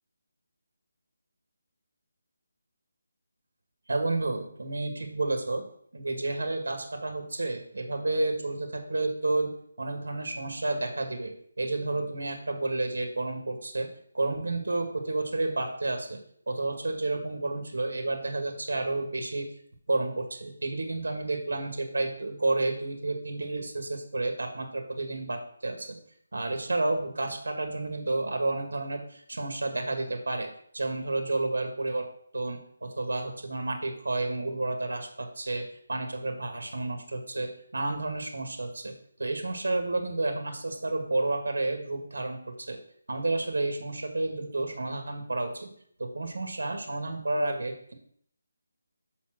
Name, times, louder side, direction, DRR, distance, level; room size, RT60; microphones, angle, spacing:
voice 1, 3.9-5.6 5.9-9.5 9.8-13.9 14.1-16.2 16.5-19.5 19.9-26.0 26.3-30.5 30.7-32.0 32.3-38.9 39.2-42.8 43.1-45.7 46.0-47.9, right 2 dB, 85° right, 4 dB, 1.8 m, -31 dB
6.7 x 4.3 x 6.4 m, 0.65 s
figure-of-eight pair, 170°, 0 cm